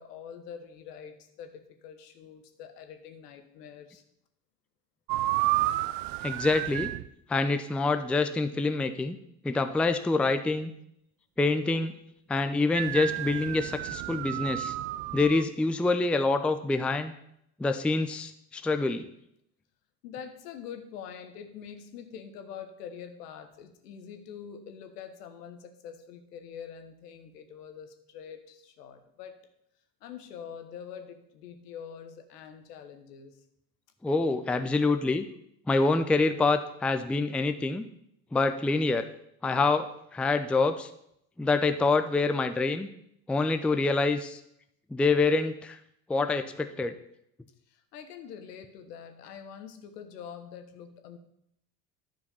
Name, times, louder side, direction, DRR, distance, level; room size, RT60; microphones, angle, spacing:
voice 1, 0.0-4.0 20.0-29.4 30.0-33.4 47.7-51.2, left 7 dB, 75° left, 7 dB, 1.3 m, -45 dB
sound 1, 5.1-7.1 12.7-15.4, right 17 dB, 55° right, 0.5 m, -31 dB
voice 2, 6.2-6.9 7.3-9.2 9.4-10.7 11.4-11.9 12.3-14.7 15.1-17.1 17.6-19.1 34.0-35.3 35.7-37.8 38.3-39.0 39.4-40.9 41.4-42.9 43.3-44.4 44.9-45.8 46.1-46.9, left 3 dB, 5° left, 9 dB, 0.4 m, -26 dB
10.5 x 4.7 x 5.5 m, 0.75 s
hypercardioid pair, 70°, 48 cm